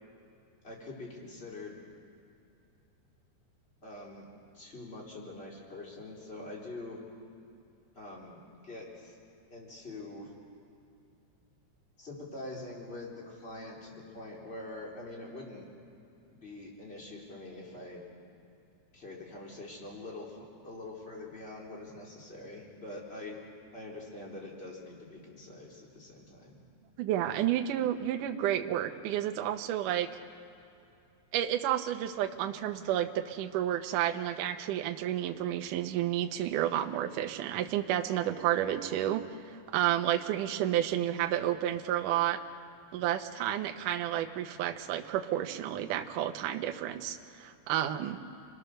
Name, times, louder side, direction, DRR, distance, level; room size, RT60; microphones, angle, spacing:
voice 1, 0.6-1.8 3.8-4.3 4.5-7.0 8.0-9.2 9.5-10.3 12.0-15.6 16.3-18.0 18.9-20.4 20.6-23.4 23.7-26.6 48.2-48.3, left 2 dB, 15° left, -3 dB, 3.5 m, -44 dB
voice 2, 27.0-30.1 31.3-42.4 42.9-48.2, right 11 dB, 85° right, 5 dB, 1.8 m, -31 dB
29.5 x 22.0 x 6.7 m, 2.6 s
omnidirectional pair, 5.2 m